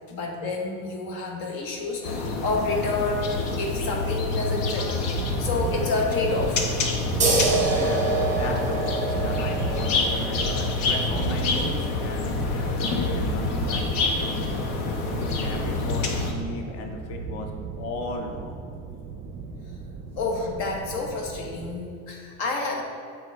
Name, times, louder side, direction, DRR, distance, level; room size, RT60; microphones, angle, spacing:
voice 1, 0.1-6.7 7.1-7.3 14.2-14.5 15.0-15.1 20.2-22.8, left 3 dB, 55° left, 0 dB, 1.3 m, -29 dB
sound 1, 2.0-16.3, left 3 dB, 75° left, 1.0 m, -27 dB
sound 2, 5.2-21.8, right 4 dB, 40° right, 0.6 m, -34 dB
sound 3, 7.2-14.3, right 3 dB, 15° right, 1.3 m, -28 dB
voice 2, 7.7-14.6 15.1-17.5 17.8-18.6, left 3 dB, 35° left, 2 dB, 0.6 m, -36 dB
8.0 x 3.9 x 3.5 m, 2.4 s
cardioid pair, 145°, 42 cm